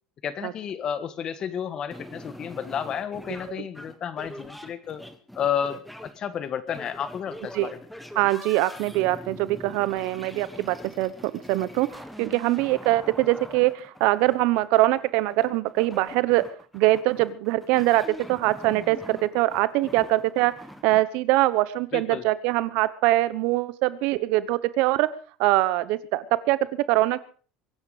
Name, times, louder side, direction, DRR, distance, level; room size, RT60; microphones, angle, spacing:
voice 1, 0.2-5.0 5.3-7.8 21.9-22.2, left 8 dB, 35° left, 14 dB, 1.5 m, -31 dB
sound 1, 1.9-21.0, equal, ahead, 1.5 m, -43 dB
voice 2, 8.2-16.4 16.7-18.0 18.3-20.5 20.8-25.1 25.4-27.2, right 17 dB, 65° right, 17 dB, 1.0 m, -23 dB
23.0 x 9.8 x 4.9 m, 0.41 s
supercardioid pair, 125°, 2 cm